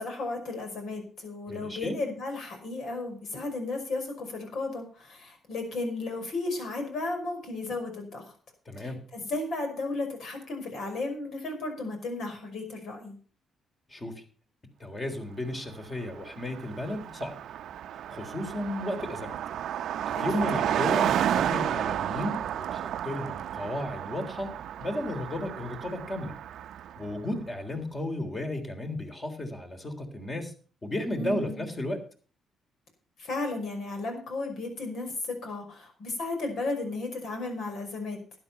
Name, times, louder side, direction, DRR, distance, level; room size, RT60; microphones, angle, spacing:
voice 1, 0.0-8.3 8.8-13.2 20.2-20.3 20.5-20.7 31.2-31.6 33.2-38.2, left 2 dB, 70° left, 4 dB, 5.4 m, -34 dB
voice 2, 1.5-2.0 8.7-9.0 13.9-14.2 14.8-17.4 18.1-19.4 20.1-26.4 27.0-30.5 30.8-32.0, left 1 dB, 25° left, 5 dB, 3.4 m, -34 dB
Car passing by, 15.8-15.9 16.1-27.1, right 10 dB, 75° right, 0.6 m, -32 dB
12.5 x 9.8 x 5.7 m, 0.40 s
cardioid pair, 90°, 0 cm